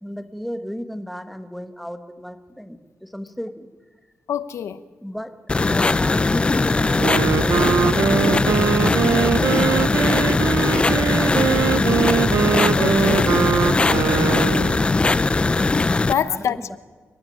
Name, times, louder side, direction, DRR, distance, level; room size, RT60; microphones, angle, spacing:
voice 1, 0.0-3.7 5.0-5.4 5.7-8.6 8.9-12.0 16.0-16.8, equal, ahead, 8 dB, 1.4 m, -34 dB
voice 2, 4.3-4.8 12.8-13.4 16.1-16.8, left 9 dB, 85° left, 14 dB, 0.9 m, -25 dB
sound 1, 5.5-16.1, left 3 dB, 20° left, 0.6 m, -19 dB
Wind instrument woodwind instrument, 6.8-14.8, right 8 dB, 75° right, 0.8 m, -22 dB
27.5 x 12.5 x 9.2 m, 1.4 s
wide cardioid pair, 135°, 5 cm